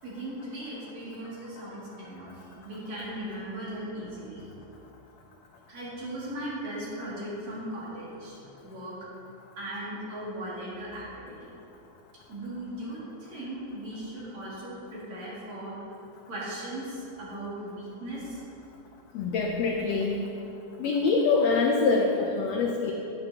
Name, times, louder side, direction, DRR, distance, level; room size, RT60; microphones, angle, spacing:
voice 1, 0.0-4.5 5.7-9.0 9.6-11.5 12.3-15.8 16.3-18.4, right 1 dB, 60° right, -8 dB, 3.5 m, -38 dB
voice 2, 19.1-20.2 20.8-22.9, left 4 dB, 85° left, 1 dB, 1.4 m, -25 dB
11.0 x 9.7 x 2.8 m, 2.9 s
omnidirectional pair, 3.7 m